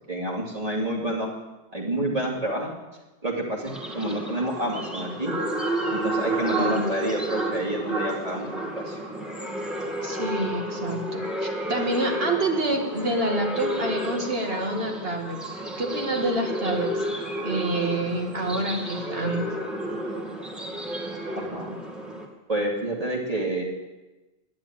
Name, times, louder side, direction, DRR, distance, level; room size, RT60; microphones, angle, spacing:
voice 1, 0.1-1.3 1.7-2.7 3.2-5.4 5.9-9.0 21.4-21.8 22.5-23.6, right 1 dB, 35° right, -2 dB, 2.7 m, -29 dB
sound 1, 3.7-22.3, right 1 dB, ahead, 2.1 m, -31 dB
voice 2, 10.0-15.4 15.8-17.0 17.4-19.5, right 1 dB, 60° right, 1 dB, 2.4 m, -27 dB
11.0 x 10.5 x 8.9 m, 1.1 s
omnidirectional pair, 1.1 m